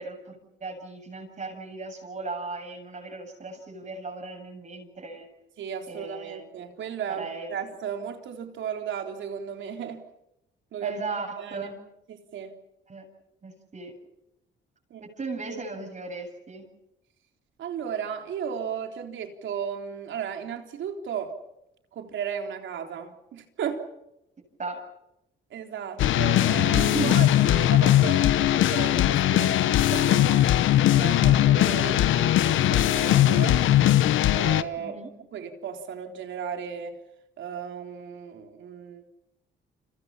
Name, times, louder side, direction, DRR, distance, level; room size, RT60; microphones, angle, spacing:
voice 1, 0.0-5.3 5.9-6.5 7.1-7.5 10.8-11.7 12.9-13.1 13.4-13.9 15.2-16.6 24.6-24.8 26.9-27.2 34.8-35.1, right 3 dB, 40° right, 7.9 m, -36 dB
voice 2, 5.6-10.0 10.7-11.0 11.4-11.7 12.1-12.5 14.9-15.1 17.6-21.4 21.9-23.9 25.5-30.5 30.9-33.7 34.3-35.0 35.3-37.0 37.4-39.0, right 8 dB, 70° right, 3.7 m, -35 dB
sound 1, 26.0-34.6, left 13 dB, 80° left, 1.0 m, -20 dB
30.0 x 26.5 x 5.8 m
cardioid pair, 90°, 20 cm